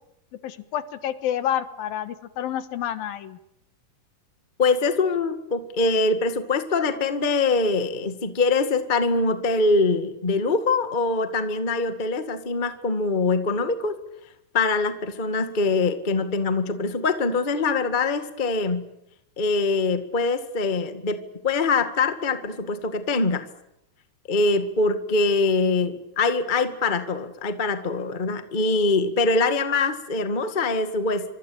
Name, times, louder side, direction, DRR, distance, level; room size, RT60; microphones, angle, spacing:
voice 1, 0.4-3.4, left 10 dB, 75° left, 12 dB, 3.0 m, -29 dB
voice 2, 4.6-13.9 14.5-18.9 19.4-23.4 24.3-31.2, left 3 dB, 25° left, 9 dB, 1.0 m, -23 dB
25.5 x 25.0 x 8.7 m, 0.83 s
omnidirectional pair, 4.3 m